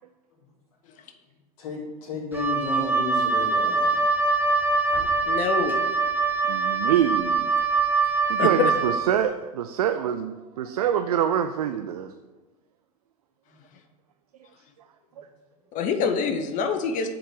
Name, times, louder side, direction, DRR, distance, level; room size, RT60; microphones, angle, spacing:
voice 1, 1.6-4.0 13.5-13.6, left 3 dB, 60° left, -5 dB, 2.2 m, -32 dB
Wind instrument woodwind instrument, 2.3-9.0, right 4 dB, 10° right, 1.4 m, -23 dB
voice 2, 5.3-5.8 8.4-8.5 15.7-17.1, left 5 dB, 40° left, 6 dB, 0.9 m, -25 dB
voice 3, 6.5-7.5 8.3-12.1 15.2-15.3, right 10 dB, 80° right, 9 dB, 0.5 m, -25 dB
7.6 x 4.3 x 6.5 m, 1.2 s
hypercardioid pair, 95°, 19 cm